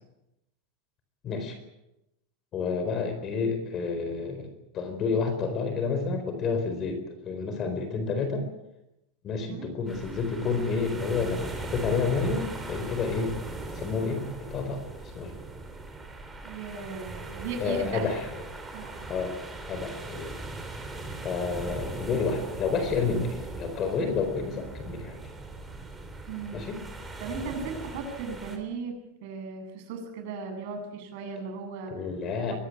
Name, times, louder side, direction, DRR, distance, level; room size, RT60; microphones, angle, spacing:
voice 1, 1.2-1.6 2.5-8.4 9.2-13.4 13.7-14.8 15.1-15.3 17.6-18.6 19.0-19.3 19.7-20.3 21.2-25.2 26.5-26.8 31.9-32.5, left 4 dB, 25° left, 8 dB, 4.3 m, -30 dB
sound 1, 9.9-28.6, right 2 dB, 5° right, 3.6 m, -39 dB
voice 2, 16.4-18.2 18.7-19.1 26.3-26.7 27.2-29.0 29.2-31.9 32.5-32.6, right 5 dB, 50° right, 5 dB, 8.0 m, -37 dB
23.0 x 18.5 x 8.6 m, 0.91 s
supercardioid pair, 170°, 0 cm